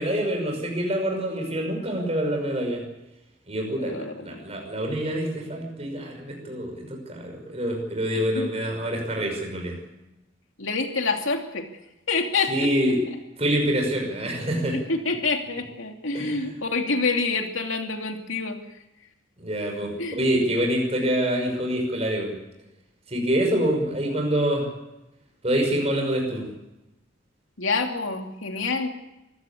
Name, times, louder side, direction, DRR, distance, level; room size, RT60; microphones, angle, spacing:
voice 1, 0.0-2.8 3.5-9.8 12.5-13.0 13.4-14.8 16.1-16.4 19.4-22.4 23.1-24.7 25.4-26.5, equal, 30° right, 2 dB, 5.8 m, -26 dB
voice 2, 3.8-4.5 8.1-8.5 10.6-11.7 12.1-12.7 14.7-18.6 20.0-20.2 27.6-28.9, left 4 dB, 75° left, 4 dB, 2.8 m, -27 dB
25.0 x 15.5 x 8.5 m, 0.97 s
head